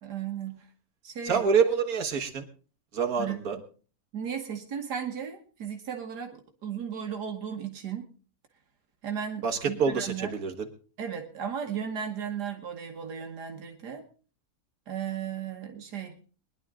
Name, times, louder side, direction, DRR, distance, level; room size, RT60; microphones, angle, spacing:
voice 1, 0.0-0.7 1.0-1.4 3.2-3.6 4.1-8.1 9.0-10.3 11.0-14.0 14.9-16.1, right 8 dB, 80° right, 4 dB, 1.9 m, -35 dB
voice 2, 1.2-2.5 2.9-3.6 9.4-10.7, right 6 dB, 65° right, 3 dB, 2.1 m, -26 dB
22.0 x 11.0 x 3.7 m, 0.38 s
omnidirectional pair, 1.7 m